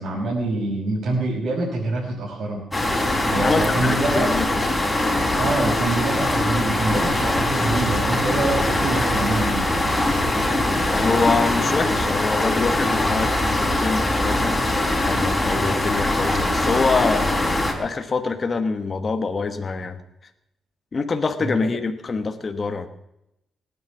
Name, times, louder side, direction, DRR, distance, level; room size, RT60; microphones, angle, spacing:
voice 1, 0.0-2.6 3.2-4.3 5.3-9.6 21.4-21.5, right 2 dB, 65° right, -3 dB, 5.7 m, -25 dB
sound 1, 2.7-17.7, left 1 dB, 10° left, 3.7 m, -22 dB
voice 2, 3.4-4.7 10.9-14.5 15.0-17.4 17.8-20.0 20.9-22.9, left 4 dB, 30° left, 6 dB, 1.3 m, -25 dB
19.0 x 9.7 x 7.3 m, 0.84 s
cardioid pair, 140°, 0 cm